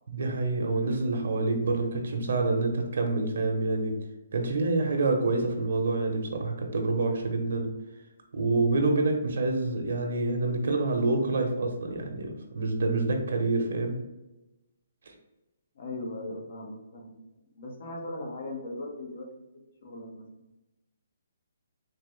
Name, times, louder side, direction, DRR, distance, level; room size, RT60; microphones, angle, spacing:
voice 1, 0.1-4.0 4.3-7.7 8.3-14.0 15.1-15.2, right 3 dB, 65° right, 3 dB, 0.9 m, -27 dB
voice 2, 15.7-17.2 17.6-19.3 19.8-20.5, left 2 dB, 55° left, 1 dB, 1.1 m, -38 dB
4.0 x 3.1 x 3.1 m, 0.99 s
hypercardioid pair, 155°, 0 cm